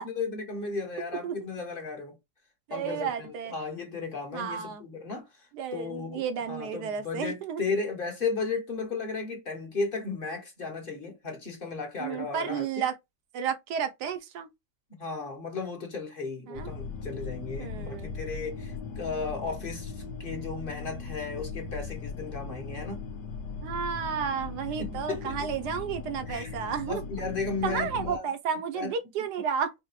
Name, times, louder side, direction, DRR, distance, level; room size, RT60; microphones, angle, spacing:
voice 1, 0.0-2.2 2.7-5.5 5.7-12.8 14.9-23.0 24.8-25.4 26.3-26.5 26.9-28.3 28.7-28.9, left 4 dB, 35° left, 1.2 m, -35 dB
voice 2, 2.7-3.5 4.3-4.8 5.5-7.6 12.0-12.9 13.3-14.5 16.5-16.7 17.6-18.2 23.6-27.0 27.6-29.7, right 7 dB, 75° right, 1.2 m, -32 dB
sound 1, 16.6-28.2, left 5 dB, 75° left, 1.3 m, -38 dB
4.8 x 2.2 x 3.0 m
omnidirectional pair, 1.9 m